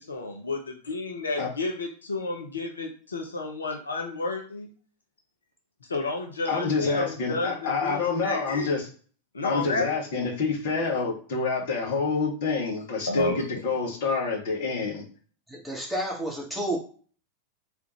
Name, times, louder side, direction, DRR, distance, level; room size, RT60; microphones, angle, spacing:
voice 1, 0.1-4.7 5.9-8.8 9.3-9.9 13.1-13.4, left 3 dB, 75° left, 3 dB, 0.8 m, -31 dB
voice 2, 6.5-8.9 9.4-15.0, left 4 dB, 55° left, 1 dB, 1.4 m, -27 dB
voice 3, 15.5-16.8, right 1 dB, ahead, -3 dB, 1.5 m, -31 dB
3.6 x 3.5 x 3.1 m, 0.41 s
figure-of-eight pair, 90°, 0 cm